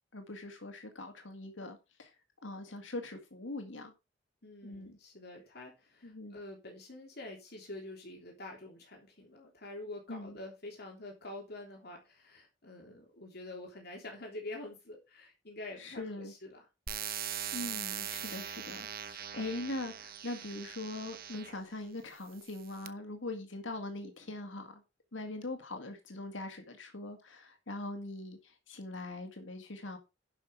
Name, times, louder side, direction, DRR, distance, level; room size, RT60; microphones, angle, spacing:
voice 1, 0.1-2.1 2.4-3.9 4.6-5.0 6.0-6.4 10.1-10.4 15.8-16.3 17.5-24.8 25.1-30.0, left 2 dB, 80° left, 2.1 m, -42 dB
voice 2, 4.4-16.7, left 2 dB, 55° left, 3.3 m, -47 dB
sound 1, 16.9-21.6 22.3-22.9, right 9 dB, 50° right, 0.9 m, -41 dB
11.5 x 5.7 x 4.8 m
head